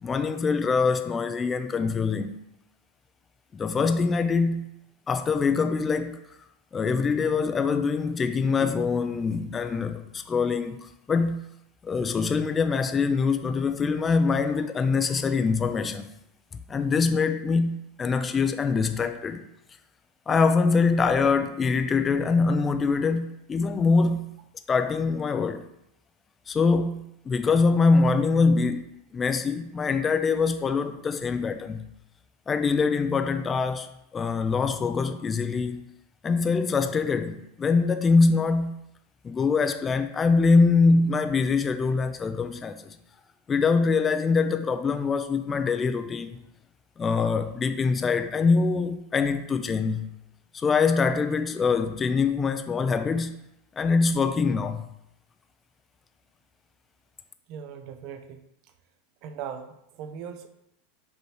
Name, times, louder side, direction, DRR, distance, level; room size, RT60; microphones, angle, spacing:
voice 1, 0.0-2.4 3.5-4.7 5.1-6.2 6.7-11.5 11.8-16.1 16.7-19.4 20.3-24.3 24.7-25.7 26.5-31.9 32.5-35.9 36.2-38.8 39.2-43.0 43.5-46.4 47.0-50.1 50.5-53.4 53.8-54.9, left 4 dB, 20° left, 0.3 m, -24 dB
voice 2, 57.5-58.4 59.2-60.5, right 8 dB, 55° right, 0.5 m, -39 dB
5.2 x 3.1 x 3.2 m
supercardioid pair, 120°, 0 cm